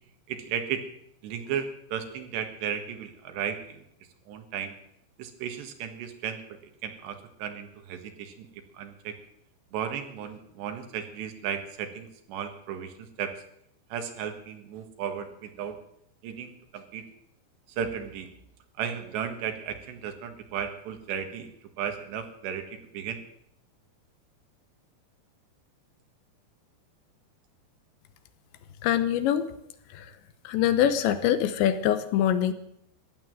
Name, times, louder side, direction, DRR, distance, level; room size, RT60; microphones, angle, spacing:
voice 1, 0.3-0.8 1.2-3.8 4.3-4.8 5.2-6.4 6.8-8.5 8.7-9.1 9.7-13.3 13.9-15.8 16.2-17.1 17.7-18.3 18.8-21.5 21.8-23.2, right 8 dB, 75° right, 6 dB, 3.7 m, -35 dB
voice 2, 28.8-29.5 30.0-30.1 30.4-32.5, left 10 dB, 85° left, 11 dB, 3.2 m, -24 dB
15.5 x 11.5 x 7.8 m, 0.74 s
omnidirectional pair, 5.2 m